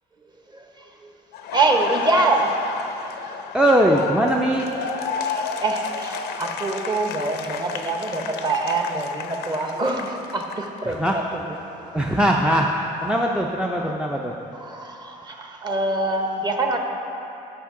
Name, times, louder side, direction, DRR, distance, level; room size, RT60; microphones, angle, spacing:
voice 1, 0.5-1.1 1.5-2.6 3.3-3.4 5.1-11.4 11.9-12.0 14.5-16.8, right 2 dB, 25° right, 3 dB, 0.9 m, -25 dB
Laughter, 1.3-11.2 11.5-13.5, left 6 dB, 75° left, 0.6 m, -33 dB
voice 2, 3.5-4.7 10.9-11.2 11.9-12.7 13.0-14.3, right 1 dB, 5° right, 0 dB, 0.4 m, -20 dB
13.0 x 5.3 x 3.7 m, 2.9 s
cardioid pair, 110°, 17 cm